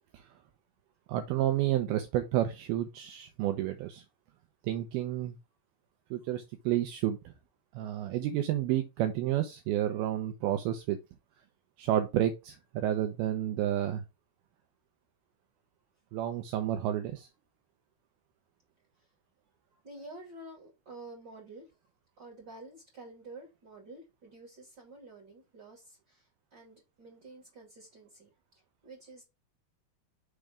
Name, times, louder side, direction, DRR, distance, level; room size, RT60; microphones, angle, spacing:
voice 1, 1.1-4.0 4.6-5.4 6.1-7.2 7.7-11.0 11.8-14.0 16.1-17.3, right 12 dB, 80° right, 7 dB, 2.2 m, -30 dB
voice 2, 19.8-21.7 22.2-28.3 28.8-29.2, right 2 dB, 30° right, -3 dB, 2.3 m, -49 dB
6.4 x 3.4 x 4.9 m, 0.25 s
omnidirectional pair, 4.9 m